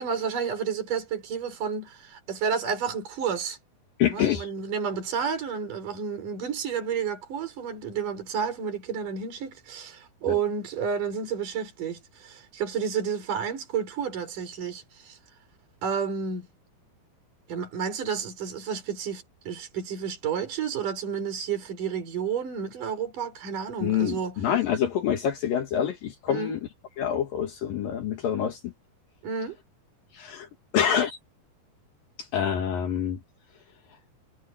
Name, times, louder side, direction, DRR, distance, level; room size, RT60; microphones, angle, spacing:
voice 1, 0.0-3.6 4.1-15.2 15.8-16.5 17.5-24.4 26.3-26.5 29.2-29.6, right 7 dB, 55° right, 6.8 m, -31 dB
voice 2, 4.0-4.5 10.3-10.4 23.8-26.6 27.0-28.7 30.1-30.5 30.7-31.2 32.2-33.2, left 9 dB, 65° left, 3.3 m, -26 dB
omnidirectional pair, 4.5 m